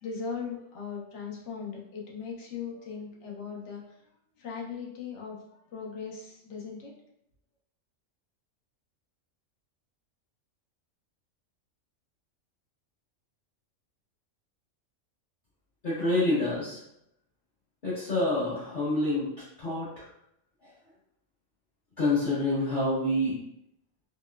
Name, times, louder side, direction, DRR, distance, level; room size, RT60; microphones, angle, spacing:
voice 1, 0.0-3.8 4.4-5.4 5.7-6.9, left 6 dB, 65° left, -3 dB, 1.0 m, -38 dB
voice 2, 15.8-16.8 17.8-19.3 19.6-20.0 22.0-23.4, left 2 dB, 40° left, -11 dB, 1.1 m, -27 dB
4.2 x 2.1 x 2.2 m, 0.77 s
omnidirectional pair, 1.3 m